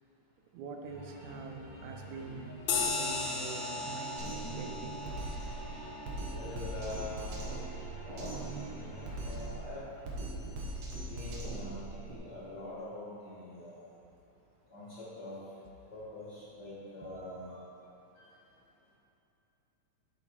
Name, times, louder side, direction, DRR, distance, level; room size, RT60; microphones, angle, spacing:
voice 1, 0.5-5.0 10.3-10.4, right 3 dB, 80° right, 3 dB, 2.1 m, -45 dB
sound 1, 0.8-9.5, right 1 dB, 45° right, 2.3 m, -48 dB
sound 2, 2.7-7.6, left 4 dB, 80° left, 2.1 m, -37 dB
Drum kit, 4.2-12.2, right 2 dB, 65° right, 2.2 m, -40 dB
voice 2, 6.2-7.2 8.0-9.8 11.1-13.8 14.7-15.4 15.9-17.6 18.2-18.3, left 1 dB, 50° left, -8 dB, 1.3 m, -44 dB
8.5 x 7.8 x 3.1 m, 2.8 s
omnidirectional pair, 3.4 m